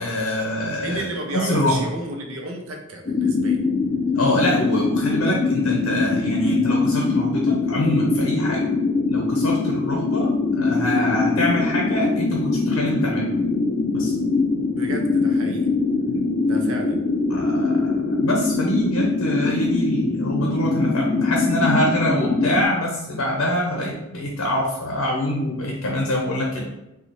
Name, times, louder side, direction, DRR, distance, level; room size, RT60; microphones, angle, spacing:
voice 1, 0.0-1.0 1.3-1.8 4.1-8.6 9.1-13.3 13.9-14.1 16.1-16.2 17.3-26.6, left 1 dB, 80° left, -1 dB, 0.6 m, -25 dB
voice 2, 0.8-3.6 14.7-15.7 16.4-17.0, right 1 dB, 85° right, 3 dB, 0.6 m, -32 dB
sound 1, 3.0-22.6, left 3 dB, 40° left, 0.3 m, -22 dB
3.9 x 2.3 x 3.0 m, 0.93 s
head